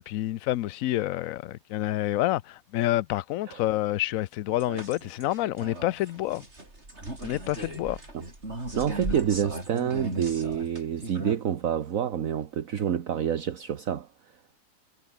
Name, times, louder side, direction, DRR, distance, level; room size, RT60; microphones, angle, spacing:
voice 1, 0.0-6.4 7.2-8.0, left 15 dB, 70° left, 0.9 m, -28 dB
sound 1, 4.5-11.4, right 2 dB, 45° right, 6.1 m, -37 dB
voice 2, 8.8-14.1, right 9 dB, 60° right, 1.5 m, -28 dB
omnidirectional pair, 1.7 m